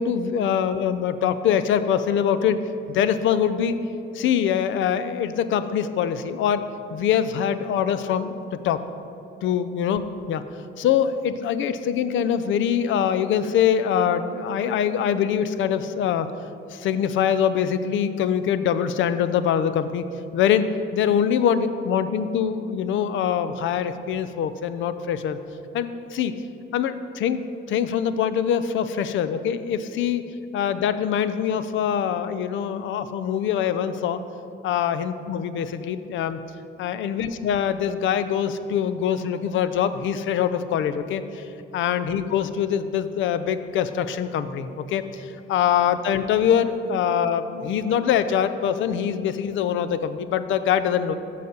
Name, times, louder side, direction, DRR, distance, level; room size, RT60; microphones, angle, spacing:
voice 1, 0.0-2.6 2.9-3.8 4.1-6.6 6.9-8.3 8.6-8.8 9.4-10.0 10.3-10.4 10.8-16.3 16.7-20.0 20.3-25.4 25.7-26.3 26.7-27.4 27.7-30.2 30.5-34.2 34.6-36.4 36.8-41.4 41.7-51.1, left 8 dB, 75° left, 12 dB, 0.5 m, -23 dB
6.9 x 4.9 x 6.5 m, 2.8 s
cardioid pair, 90°, 20 cm